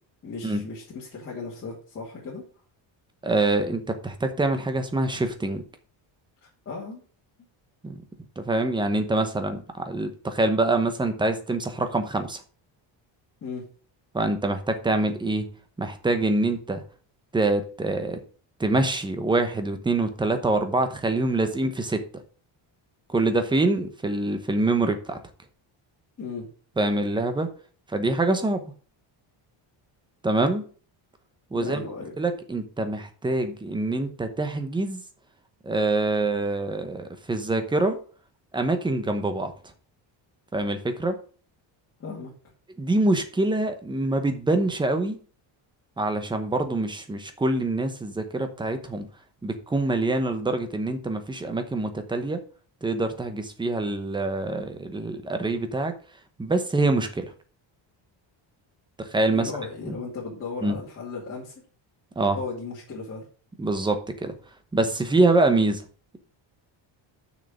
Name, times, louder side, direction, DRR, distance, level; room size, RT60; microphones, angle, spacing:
voice 1, 0.2-2.4 6.7-7.0 13.4-13.7 26.2-26.5 31.5-32.2 42.0-42.3 59.3-61.5 62.3-63.3, left 4 dB, 30° left, -6 dB, 2.5 m, -36 dB
voice 2, 3.2-5.6 7.8-8.0 8.4-12.4 14.1-15.5 15.8-16.8 17.3-18.2 18.6-22.0 23.1-25.2 26.8-27.5 27.9-28.7 30.2-30.6 31.5-31.8 32.2-35.0 35.6-38.0 38.5-39.5 40.5-41.2 42.8-45.2 46.0-49.1 49.4-52.4 52.8-55.9 56.4-57.3 59.0-59.5 59.9-60.0 60.6-60.8 62.2-62.4 63.6-64.3 64.7-65.8, right 2 dB, 10° right, 8 dB, 0.9 m, -25 dB
6.6 x 6.4 x 5.0 m, 0.40 s
cardioid pair, 180°, 48 cm